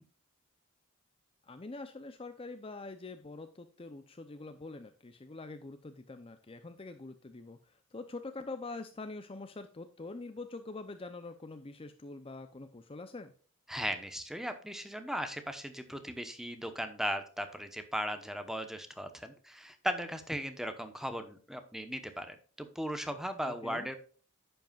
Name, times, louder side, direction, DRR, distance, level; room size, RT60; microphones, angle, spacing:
voice 1, 1.4-13.3 23.4-23.9, left 3 dB, 25° left, 9 dB, 0.5 m, -45 dB
voice 2, 13.7-24.0, equal, ahead, 8 dB, 0.9 m, -37 dB
10.5 x 7.9 x 2.4 m, 0.42 s
head